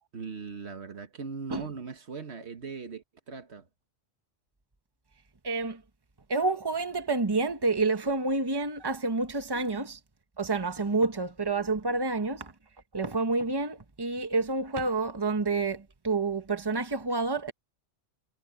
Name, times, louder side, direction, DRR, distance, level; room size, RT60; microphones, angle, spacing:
voice 1, 0.1-3.7 9.5-9.7 11.9-12.0, right 5 dB, 75° right, 1.7 m, -40 dB
voice 2, 5.4-5.8 6.3-10.0 10.4-12.5 12.9-17.5, right 3 dB, 20° right, 1.3 m, -28 dB
omnidirectional pair, 1.1 m